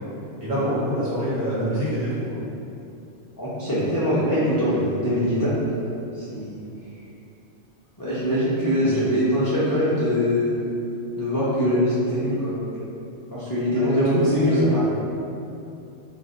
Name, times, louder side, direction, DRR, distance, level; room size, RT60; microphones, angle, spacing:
voice 1, 0.4-2.4 8.8-9.1 13.8-14.2 14.5-14.6, equal, 70° right, -9 dB, 1.2 m, -26 dB
voice 2, 3.4-5.5 6.1-6.6 8.0-10.5 11.2-12.6 13.3-14.8, equal, 35° left, -11 dB, 0.3 m, -22 dB
2.4 x 2.1 x 3.8 m, 2.7 s
omnidirectional pair, 1.2 m